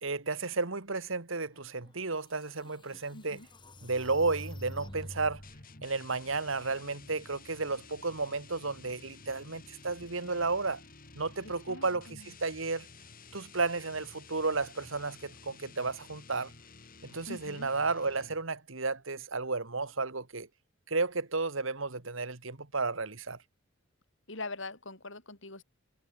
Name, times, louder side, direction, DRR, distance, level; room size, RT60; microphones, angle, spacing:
voice 1, 0.0-3.4 3.8-5.4 5.8-10.8 11.2-12.9 13.3-16.5 17.0-20.5 20.9-23.4, right 3 dB, 70° right, 2.0 m, -33 dB
sound 1, 1.8-1.9 2.5-5.6, equal, 25° left, 4.3 m, -46 dB
voice 2, 3.1-3.5 11.4-12.3 17.3-17.7 24.3-25.6, left 2 dB, 65° left, 8.0 m, -43 dB
sound 2, 5.4-18.5, left 4 dB, 45° left, 2.6 m, -53 dB
head